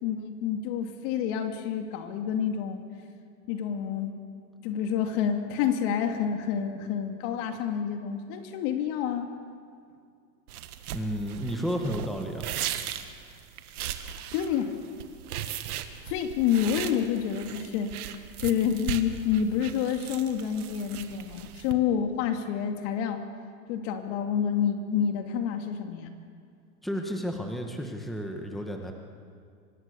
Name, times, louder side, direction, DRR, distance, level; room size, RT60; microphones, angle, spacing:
voice 1, 0.0-2.8 3.5-4.1 4.6-9.3 14.3-14.7 16.1-17.9 18.4-23.2 23.7-26.1, left 8 dB, 50° left, 5 dB, 2.5 m, -28 dB
sound 1, 10.5-21.7, right 10 dB, 75° right, 1.8 m, -38 dB
voice 2, 10.9-12.5 26.8-28.9, equal, ahead, 3 dB, 1.8 m, -32 dB
25.0 x 20.0 x 7.0 m, 2.2 s
hypercardioid pair, 125°, 44 cm